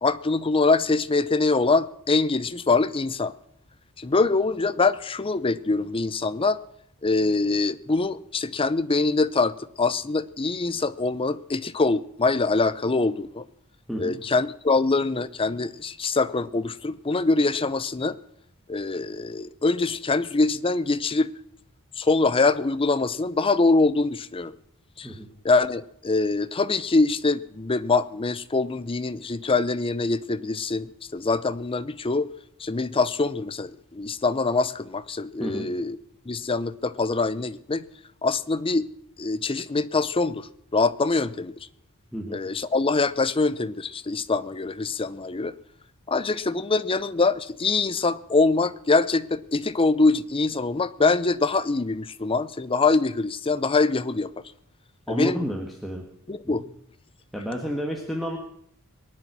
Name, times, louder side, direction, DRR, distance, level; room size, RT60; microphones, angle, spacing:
voice 1, 0.0-3.3 4.0-6.6 7.0-13.4 14.0-18.2 18.7-21.3 22.0-24.5 25.0-25.1 25.4-32.3 32.6-36.0 36.3-37.8 38.2-38.9 39.2-41.5 42.3-45.5 46.1-54.3 55.1-55.4 56.3-56.6, left 3 dB, 25° left, 0.6 m, -24 dB
voice 2, 13.9-14.2 25.0-25.3 35.4-35.7 42.1-42.4 55.1-56.0 56.4-56.7 57.3-58.4, equal, ahead, 1.7 m, -31 dB
23.0 x 9.8 x 6.2 m
head